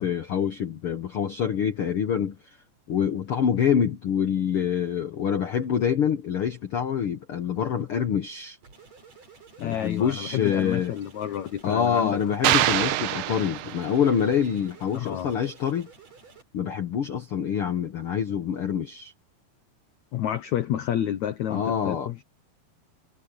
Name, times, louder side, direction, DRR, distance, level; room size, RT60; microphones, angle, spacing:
voice 1, 0.0-2.6 2.9-8.6 9.6-10.9 11.6-15.9 16.5-19.1 21.5-22.1, left 8 dB, 90° left, 1.2 m, -26 dB
sound 1, 8.6-16.4, right 5 dB, 40° right, 6.8 m, -51 dB
voice 2, 9.6-12.2 14.9-15.3 20.1-22.2, left 11 dB, 70° left, 1.8 m, -30 dB
sound 2, 12.4-14.2, right 14 dB, 75° right, 2.1 m, -24 dB
omnidirectional pair, 4.5 m